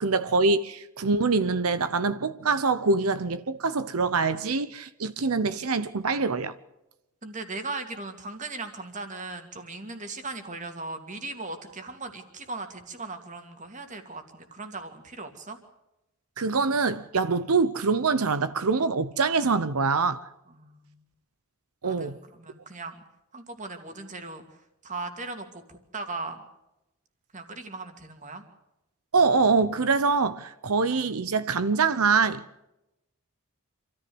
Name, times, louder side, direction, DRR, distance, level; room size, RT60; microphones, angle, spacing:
voice 1, 0.0-6.5 16.4-20.3 21.8-22.2 29.1-32.6, right 4 dB, 80° right, 0.8 m, -24 dB
voice 2, 7.2-15.6 20.5-21.0 21.8-23.0 23.3-26.4 27.3-28.4, right 3 dB, 35° right, 2.4 m, -38 dB
26.0 x 14.0 x 7.9 m
head